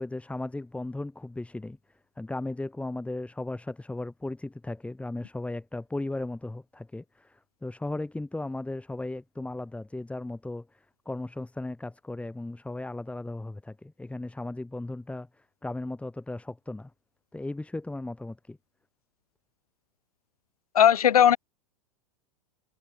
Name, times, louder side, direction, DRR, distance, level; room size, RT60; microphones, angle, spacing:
voice 1, 0.0-1.8 2.2-16.9 17.3-18.6, left 2 dB, 5° left, 7.0 m, -36 dB
voice 2, 20.7-21.4, left 9 dB, 75° left, 2.9 m, -18 dB
hypercardioid pair, 100°, 19 cm